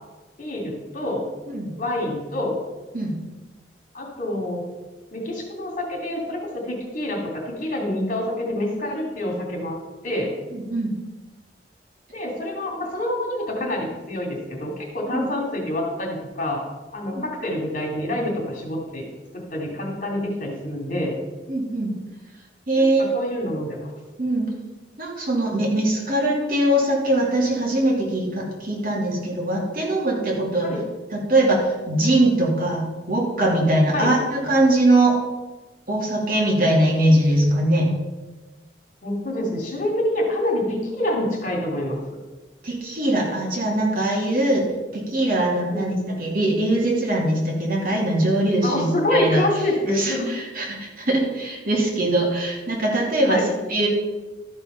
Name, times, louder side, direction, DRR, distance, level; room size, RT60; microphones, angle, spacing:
voice 1, 0.4-1.2 1.8-2.6 3.9-4.7 5.1-9.8 10.0-10.3 12.1-16.6 16.9-19.1 19.3-21.2 22.8-22.9 23.1-23.9 30.6-30.8 33.9-34.1 39.0-42.0 45.7-46.2 48.6-50.3 53.3-53.5, left 1 dB, 50° left, 0 dB, 2.7 m, -26 dB
voice 2, 10.5-10.9 15.1-15.2 17.1-17.2 21.5-21.9 22.7-23.1 24.2-24.5 25.0-30.7 31.1-35.2 35.9-38.0 42.6-44.6 44.9-49.4 50.0-53.4 53.7-53.9, right 1 dB, 55° right, -2 dB, 2.6 m, -21 dB
13.0 x 5.4 x 5.7 m, 1.2 s
head